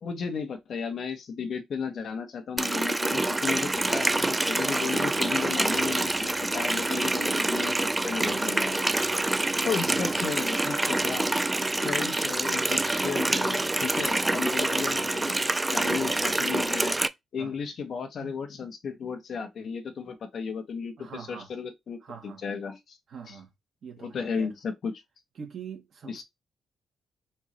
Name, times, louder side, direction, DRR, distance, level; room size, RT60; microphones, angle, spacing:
voice 1, 0.0-8.8 9.6-11.3 11.7-15.4 15.7-16.9 17.3-23.0 23.3-23.4 24.0-24.9 26.1-26.2, left 6 dB, 50° left, 1.3 m, -34 dB
Water tap faucet, 2.6-17.1, right 2 dB, 15° right, 0.4 m, -26 dB
voice 2, 9.7-10.5 11.3-11.4 12.5-12.8 15.9-16.3 17.4-17.6 18.2-18.4 21.0-21.5 22.0-22.4 23.1-23.5 23.8-24.5 25.4-26.2, right 6 dB, 55° right, 2.0 m, -44 dB
4.5 x 3.7 x 3.0 m
cardioid pair, 140°, 0 cm